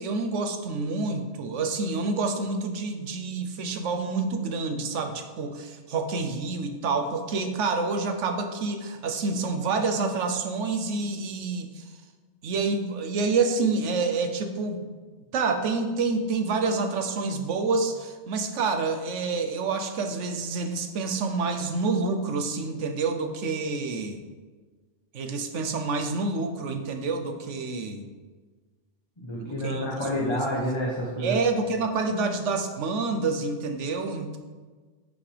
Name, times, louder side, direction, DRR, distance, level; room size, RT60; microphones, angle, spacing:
voice 1, 0.0-11.8 12.4-14.9 15.3-24.2 25.1-28.1 29.4-29.8 30.3-30.4 31.2-34.4, right 4 dB, 85° right, 6 dB, 1.1 m, -28 dB
voice 2, 29.2-31.4, equal, 25° left, -4 dB, 1.0 m, -28 dB
9.4 x 5.9 x 3.4 m, 1.4 s
omnidirectional pair, 1.2 m